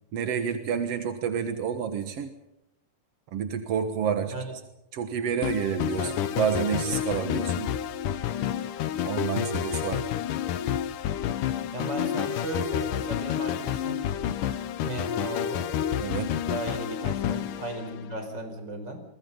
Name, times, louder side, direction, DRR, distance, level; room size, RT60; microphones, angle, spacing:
voice 1, 0.1-2.3 3.3-4.3 4.9-7.7 9.0-10.0 16.0-16.4, right 7 dB, 60° right, 8 dB, 1.7 m, -29 dB
sound 1, 5.4-18.3, left 10 dB, 70° left, 2.2 m, -29 dB
voice 2, 11.7-14.0 14.8-15.7 16.5-19.0, right 2 dB, 25° right, 6 dB, 4.7 m, -36 dB
29.0 x 23.0 x 5.5 m, 0.81 s
omnidirectional pair, 4.6 m